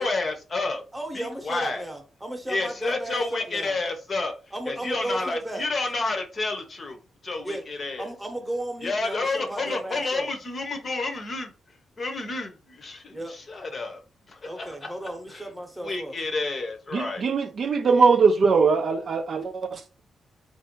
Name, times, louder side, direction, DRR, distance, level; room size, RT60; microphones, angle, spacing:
voice 1, 0.0-0.8 1.1-1.8 2.5-4.3 4.7-7.0 7.2-8.1 8.8-11.5 12.0-13.2 13.5-14.0 14.4-14.9 15.3-15.4 15.8-17.2, left 3 dB, 30° left, 0.8 m, -30 dB
voice 2, 0.9-3.8 4.5-5.7 7.4-7.7 8.0-10.3 13.1-13.4 14.4-16.2, right 1 dB, 10° right, 0.9 m, -34 dB
voice 3, 16.9-20.0, right 5 dB, 40° right, 0.4 m, -21 dB
4.4 x 2.6 x 4.4 m
wide cardioid pair, 180°, 0 cm